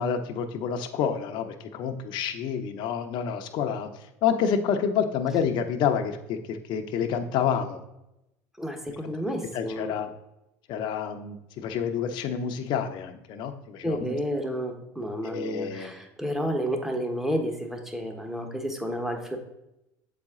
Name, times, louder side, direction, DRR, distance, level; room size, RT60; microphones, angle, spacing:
voice 1, 0.0-3.9 4.2-7.8 9.5-10.1 10.7-14.2 15.2-16.0, left 7 dB, 60° left, 7 dB, 0.7 m, -28 dB
voice 2, 8.6-9.9 13.8-19.4, equal, 5° right, 3 dB, 1.1 m, -31 dB
7.3 x 4.2 x 3.7 m, 0.89 s
supercardioid pair, 100°, 9 cm